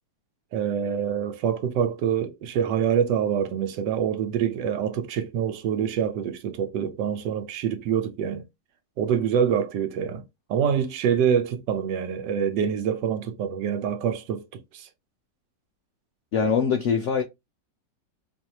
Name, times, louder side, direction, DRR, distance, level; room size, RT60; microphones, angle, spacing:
voice 1, 0.5-8.4 9.0-10.2 10.5-14.9, right 8 dB, 85° right, 1.3 m, -26 dB
voice 2, 16.3-17.2, left 6 dB, 80° left, 0.6 m, -23 dB
4.0 x 2.6 x 2.8 m
omnidirectional pair, 1.9 m